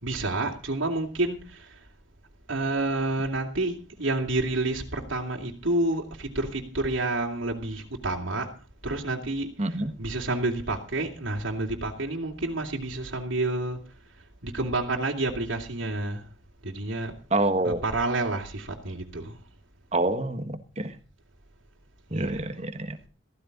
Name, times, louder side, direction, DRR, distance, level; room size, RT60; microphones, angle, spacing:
voice 1, 0.0-1.8 2.5-8.5 8.8-13.8 14.4-16.2 16.6-17.1 17.6-19.4 22.1-22.4, right 2 dB, 85° right, 2.9 m, -29 dB
voice 2, 9.6-9.9 17.3-17.8 19.9-21.0 22.1-23.0, right 2 dB, 35° right, 1.5 m, -27 dB
15.5 x 14.5 x 4.0 m
head